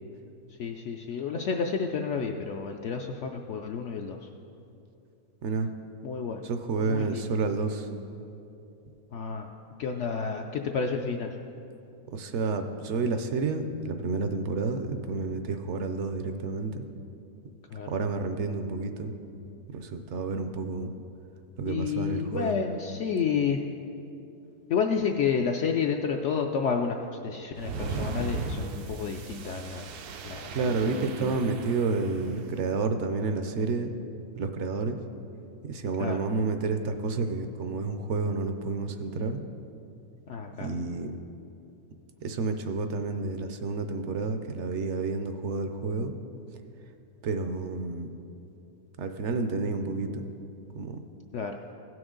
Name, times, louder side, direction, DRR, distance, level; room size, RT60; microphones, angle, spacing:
voice 1, 0.6-4.2 6.0-6.4 6.8-7.3 9.1-9.5 9.8-11.3 17.7-17.9 21.7-23.6 24.7-27.0 27.2-29.9 30.2-31.4 36.0-36.2 40.3-40.7 51.3-51.5, left 6 dB, 70° left, 3 dB, 0.7 m, -30 dB
voice 2, 6.4-7.9 12.1-16.8 17.9-19.1 19.7-20.9 21.6-22.6 30.5-33.9 34.4-35.0 35.6-39.4 40.6-41.1 42.2-46.1 47.2-48.1 49.0-50.3 50.7-51.0, right 3 dB, 65° right, 7 dB, 0.7 m, -30 dB
sound 1, 27.6-32.5, right 3 dB, 85° right, 1.2 m, -37 dB
16.5 x 6.1 x 3.8 m, 2.7 s
omnidirectional pair, 1.6 m